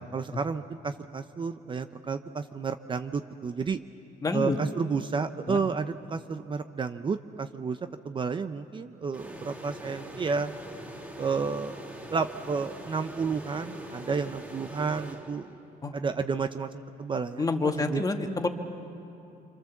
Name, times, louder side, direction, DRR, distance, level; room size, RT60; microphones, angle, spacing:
voice 1, 0.1-3.8 4.3-7.8 8.0-10.5 11.2-11.8 12.1-15.6 15.9-18.0, right 5 dB, 30° right, 9 dB, 0.7 m, -31 dB
voice 2, 4.2-4.6 5.5-5.6 15.8-15.9 17.4-18.5, left 3 dB, 20° left, 5 dB, 1.7 m, -27 dB
sound 1, 9.1-15.8, equal, 10° right, 2.8 m, -43 dB
26.5 x 25.5 x 7.3 m, 2.8 s
cardioid pair, 110°, 17 cm